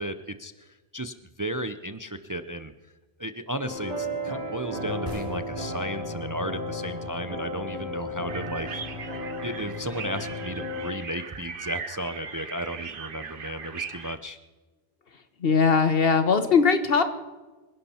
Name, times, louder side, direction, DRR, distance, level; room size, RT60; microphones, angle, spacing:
voice 1, 0.0-2.7 3.2-9.0 9.4-14.4, right 1 dB, 25° right, 11 dB, 0.5 m, -34 dB
sound 1, 3.6-10.9, left 1 dB, 40° right, 6.4 m, -34 dB
sound 2, 5.1-8.5, left 1 dB, 50° left, 3.2 m, -43 dB
sound 3, 8.3-14.2, right 6 dB, 60° right, 1.1 m, -39 dB
voice 2, 15.4-17.0, left 5 dB, 65° left, 9 dB, 1.5 m, -20 dB
25.5 x 11.0 x 4.3 m, 1.3 s
omnidirectional pair, 1.0 m